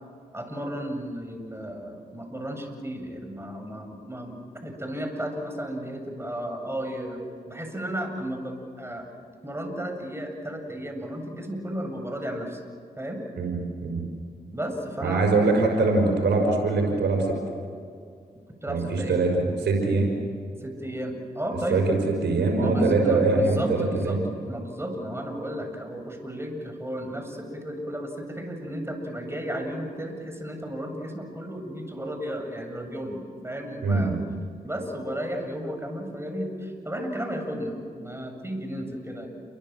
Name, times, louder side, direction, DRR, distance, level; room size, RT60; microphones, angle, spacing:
voice 1, 0.3-9.1 9.4-12.6 13.0-13.2 14.5-15.3 18.6-19.2 20.6-21.9 22.6-24.2 24.5-34.2 34.6-39.3, equal, 15° right, 4 dB, 7.7 m, -33 dB
voice 2, 13.4-14.0 15.0-17.3 18.7-19.3 19.6-20.1 21.7-22.0 22.2-24.2 33.8-34.1, right 3 dB, 90° right, 1 dB, 5.7 m, -23 dB
29.5 x 23.5 x 7.6 m, 2.3 s
cardioid pair, 45°, 18 cm